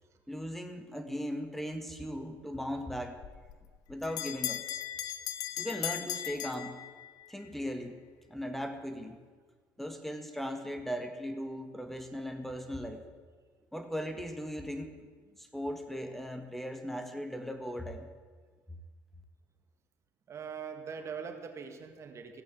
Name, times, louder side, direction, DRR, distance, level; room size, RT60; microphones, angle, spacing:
voice 1, 0.3-3.2 3.9-4.6 5.6-6.8 7.3-8.0 8.3-9.2 9.8-13.0 13.7-15.0 15.4-18.1, equal, 5° left, 7 dB, 1.6 m, -38 dB
Bell, 3.2-7.3, left 12 dB, 75° left, 0.9 m, -38 dB
voice 2, 20.3-22.4, right 6 dB, 45° right, 6 dB, 1.8 m, -42 dB
16.0 x 8.6 x 8.2 m, 1.5 s
supercardioid pair, 75°, 7 cm